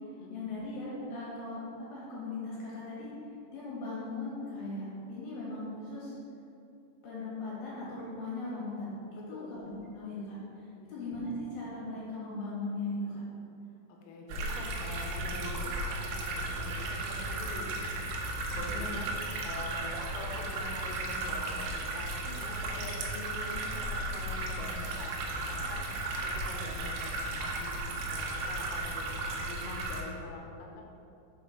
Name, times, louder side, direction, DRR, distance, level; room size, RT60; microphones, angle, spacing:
voice 1, 0.3-3.1 3.5-6.2 7.0-13.2 18.7-19.0, left 2 dB, 65° left, -7 dB, 3.3 m, -39 dB
voice 2, 9.2-9.8 10.8-10.9 14.1-19.1 19.4-27.7 28.1-29.1 29.4-30.8, left 3 dB, 85° left, 0 dB, 3.5 m, -45 dB
sound 1, 14.3-30.0, right 2 dB, 80° right, 2.9 m, -35 dB
7.3 x 4.3 x 5.1 m, 2.6 s
omnidirectional pair, 5.8 m